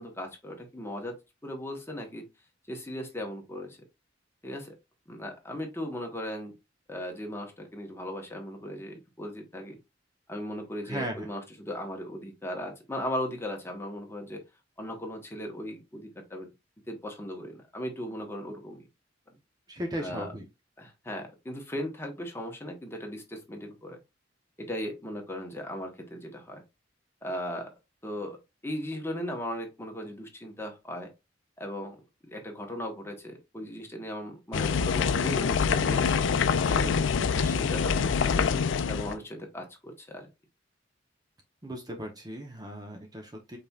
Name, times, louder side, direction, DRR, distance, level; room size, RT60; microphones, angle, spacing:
voice 1, 0.0-2.3 2.7-3.8 4.4-4.8 5.1-6.5 6.9-9.8 10.3-14.4 14.8-16.5 16.9-18.9 20.0-20.3 20.8-24.0 24.6-26.6 27.2-27.7 28.0-28.4 28.6-31.1 31.6-32.0 32.2-36.3 36.6-37.0 37.3-38.4 38.9-40.3, equal, 15° left, 1.2 m, -37 dB
voice 2, 10.9-11.3 19.7-20.5 41.6-43.6, equal, 20° right, 0.8 m, -36 dB
sound 1, 34.5-39.1, left 6 dB, 80° left, 0.4 m, -25 dB
5.3 x 4.2 x 2.4 m
head